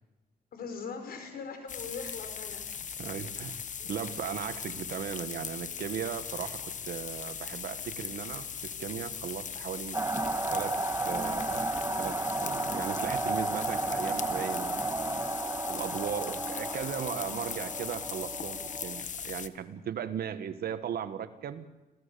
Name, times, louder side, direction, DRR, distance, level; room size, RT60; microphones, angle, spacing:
voice 1, 0.5-2.6 3.8-3.9 17.2-17.4, left 5 dB, 70° left, 6 dB, 4.8 m, -41 dB
sound 1, 1.7-19.5, left 7 dB, 50° left, 1.1 m, -39 dB
voice 2, 3.0-10.0 10.5-14.8 15.6-21.6, right 8 dB, 70° right, 10 dB, 1.5 m, -37 dB
sound 2, 9.9-19.0, right 2 dB, 20° right, 1.3 m, -33 dB
27.0 x 16.5 x 6.9 m, 1.1 s
cardioid pair, 90°, 16 cm